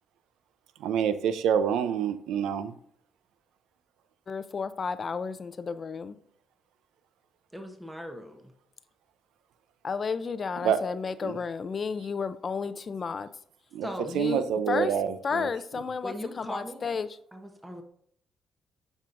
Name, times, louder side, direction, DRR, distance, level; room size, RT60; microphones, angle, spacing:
voice 1, 0.8-2.7 10.6-10.8 11.2-11.3 13.7-13.9 14.1-15.5, right 8 dB, 85° right, 0.5 m, -27 dB
voice 2, 4.3-6.1 9.8-13.3 14.1-15.0 15.2-17.2, left 5 dB, 40° left, 0.5 m, -32 dB
voice 3, 7.5-8.4 13.8-14.1 16.0-16.9 17.3-17.8, equal, 5° right, 0.9 m, -39 dB
7.4 x 5.4 x 2.5 m
cardioid pair, 90°, 0 cm